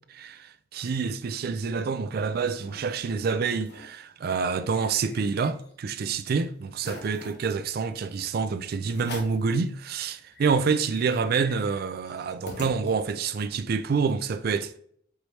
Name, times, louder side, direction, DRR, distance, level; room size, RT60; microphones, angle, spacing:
voice 1, 0.1-14.8, right 5 dB, 55° right, 0.4 m, -27 dB
sound 1, 2.0-2.8 3.2-3.3 3.6-3.9 4.3-5.9 6.3-6.4 6.8-7.5 8.2-8.3 8.9-9.5 10.0-10.1 10.3-13.3, left 1 dB, 65° left, 1.0 m, -44 dB
4.7 x 3.1 x 2.8 m
head